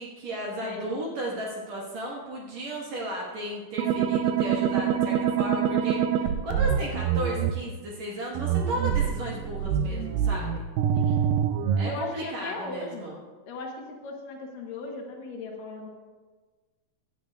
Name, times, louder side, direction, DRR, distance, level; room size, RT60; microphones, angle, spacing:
voice 1, 0.0-10.7 11.8-13.2, equal, 60° right, -3 dB, 2.2 m, -34 dB
voice 2, 0.6-1.0 10.9-11.3 11.8-13.1 13.5-15.9, left 2 dB, 70° left, 1 dB, 2.5 m, -37 dB
sound 1, 3.8-7.5 8.4-11.9, right 8 dB, 80° right, 2.0 m, -25 dB
17.0 x 10.5 x 2.3 m, 1.4 s
omnidirectional pair, 4.4 m